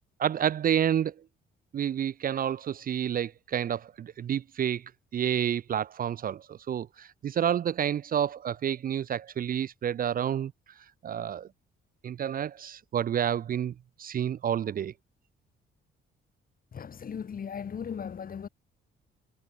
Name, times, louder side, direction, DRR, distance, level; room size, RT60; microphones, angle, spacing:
voice 1, 0.2-1.1 1.7-4.8 5.1-10.5 11.0-11.5 12.0-14.9, right 9 dB, 45° right, 0.5 m, -29 dB
voice 2, 16.7-18.5, left 7 dB, 45° left, 2.5 m, -37 dB
cardioid pair, 90°, 20 cm